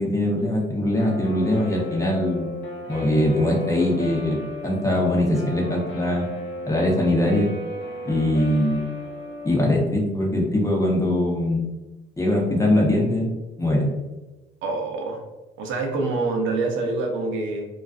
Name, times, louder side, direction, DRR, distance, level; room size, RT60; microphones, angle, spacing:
voice 1, 0.0-2.5 2.9-6.3 6.7-7.5 8.1-8.9 9.4-11.7 12.2-13.3 13.6-13.9, left 1 dB, 15° left, -2 dB, 0.7 m, -22 dB
Guitar, 1.0-9.7, equal, 80° left, 0.7 m, -35 dB
voice 2, 14.6-15.2 15.6-17.7, right 3 dB, 80° right, 2 dB, 0.6 m, -26 dB
2.4 x 2.3 x 2.3 m, 1.1 s
cardioid pair, 90°, 20 cm